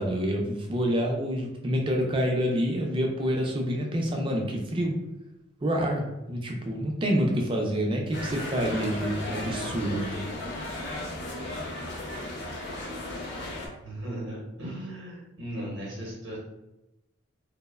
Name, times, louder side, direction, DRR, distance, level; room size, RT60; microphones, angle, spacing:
voice 1, 0.0-5.0 5.6-10.1, equal, 25° right, 1 dB, 0.3 m, -27 dB
sound 1, 8.1-13.7, left 1 dB, 55° left, 0.5 m, -35 dB
voice 2, 13.8-16.4, right 1 dB, 60° right, -4 dB, 0.7 m, -37 dB
2.8 x 2.0 x 2.2 m, 0.95 s
head